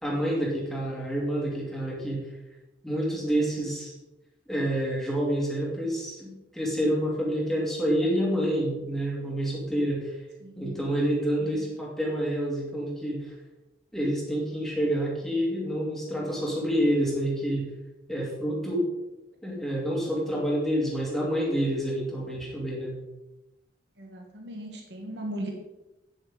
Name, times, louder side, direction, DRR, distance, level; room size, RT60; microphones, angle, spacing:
voice 1, 0.0-2.2 2.8-3.9 4.5-10.1 10.6-13.3 13.9-17.7 18.1-18.9 19.4-23.0, equal, ahead, -5 dB, 2.6 m, -28 dB
voice 2, 10.4-10.7 24.0-25.5, right 1 dB, 75° right, 1 dB, 1.4 m, -37 dB
9.3 x 8.0 x 3.9 m, 0.99 s
head